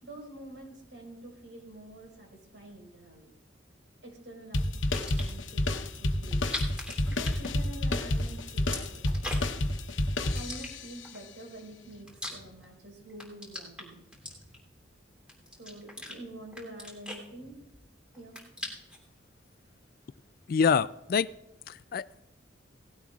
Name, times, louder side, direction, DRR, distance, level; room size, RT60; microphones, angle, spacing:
voice 1, 0.0-3.3 4.0-6.4 7.1-9.4 10.3-14.0 15.5-17.6 18.1-18.4, right 1 dB, 75° right, 4.9 m, -47 dB
sound 1, 4.5-10.9, left 1 dB, 90° left, 1.0 m, -29 dB
sound 2, 4.9-5.5 6.3-8.0 8.2-9.6 10.4-11.2 11.7-12.8 13.1-14.8 15.3-16.2 16.5-17.8 18.1-19.0, left 1 dB, 5° right, 3.1 m, -41 dB
voice 2, 20.5-21.3 21.7-22.2, left 6 dB, 50° left, 0.3 m, -26 dB
18.5 x 15.5 x 2.4 m
head